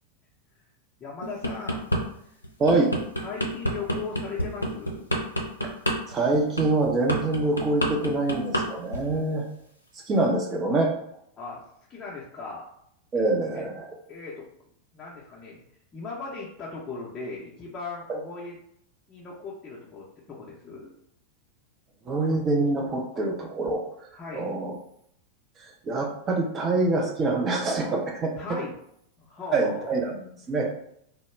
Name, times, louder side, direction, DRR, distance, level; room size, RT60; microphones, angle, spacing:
voice 1, 1.0-1.9 2.2-2.3 3.2-5.0 11.4-11.6 11.9-12.6 13.1-13.2 13.5-13.6 14.1-14.4 14.9-15.6 15.9-18.6 19.1-20.9 24.2-24.5 28.4-28.7 29.2-29.9, left 4 dB, 20° left, -6 dB, 0.6 m, -38 dB
sound 1, 1.2-2.0 2.4-8.6 8.9-9.2, equal, 85° left, 0.4 m, -27 dB
voice 2, 2.6-2.9 5.6-5.7 6.1-9.5 10.1-10.9 13.1-13.7 22.1-23.9 24.3-24.7 25.6-28.4 29.5-30.7, right 2 dB, 25° right, 0 dB, 0.6 m, -25 dB
2.1 x 2.0 x 3.2 m, 0.72 s
figure-of-eight pair, 90°, 0 cm